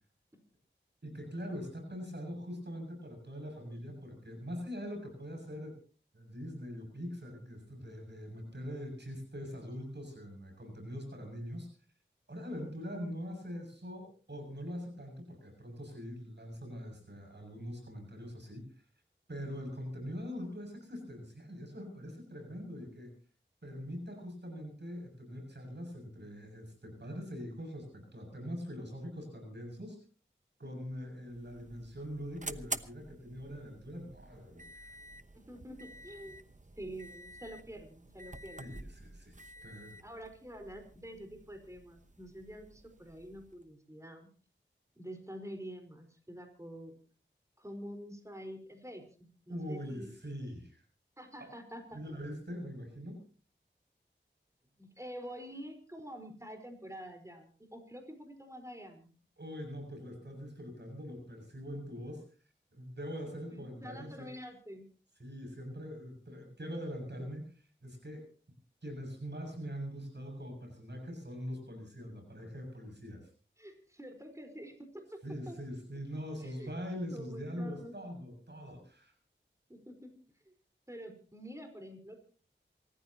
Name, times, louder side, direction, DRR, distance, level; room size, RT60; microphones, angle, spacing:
voice 1, 1.0-5.8 6.1-11.7 12.3-18.6 19.3-23.1 23.6-30.0 30.6-34.9 38.6-40.0 49.5-50.8 51.4-51.5 51.9-53.2 59.4-62.2 62.7-64.3 65.2-68.3 68.8-73.3 75.2-79.1, equal, 60° right, 4 dB, 6.9 m, -43 dB
sound 1, 31.2-43.7, right 2 dB, 40° right, 1.0 m, -48 dB
voice 2, 35.3-36.4 36.8-38.7 39.6-39.7 40.0-44.3 44.9-47.0 47.6-50.1 51.2-52.2 54.8-59.1 63.5-64.9 73.6-75.6 76.4-76.7 77.1-77.9 79.7-80.1 80.4-80.5 80.9-82.2, equal, 15° right, 5 dB, 4.6 m, -47 dB
27.5 x 14.5 x 2.9 m, 0.39 s
wide cardioid pair, 45°, 20 cm